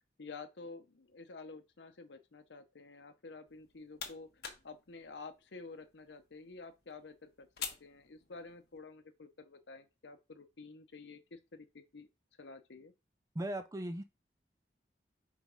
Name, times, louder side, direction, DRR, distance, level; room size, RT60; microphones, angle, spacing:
voice 1, 0.2-4.3 4.6-7.5 7.8-12.1 12.4-12.9, left 3 dB, 90° left, 0.8 m, -50 dB
sound 1, 3.5-8.8, left 7 dB, 65° left, 1.3 m, -49 dB
voice 2, 13.3-14.0, right 1 dB, 20° right, 0.4 m, -37 dB
5.1 x 3.5 x 5.2 m
head